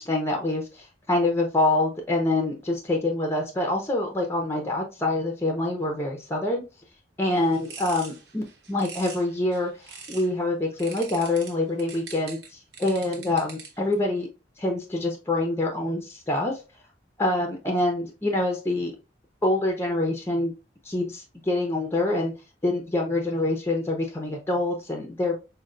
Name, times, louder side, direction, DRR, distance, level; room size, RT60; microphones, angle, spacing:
voice 1, 0.0-6.6 7.2-9.7 10.1-14.3 14.6-16.6 17.2-18.9 19.4-20.5 20.8-22.3 22.6-25.4, left 2 dB, 15° left, 2 dB, 0.6 m, -26 dB
sound 1, 7.3-10.4 10.8-13.9, right 5 dB, 70° right, 0.9 m, -43 dB
5.3 x 2.2 x 2.4 m, 0.29 s
head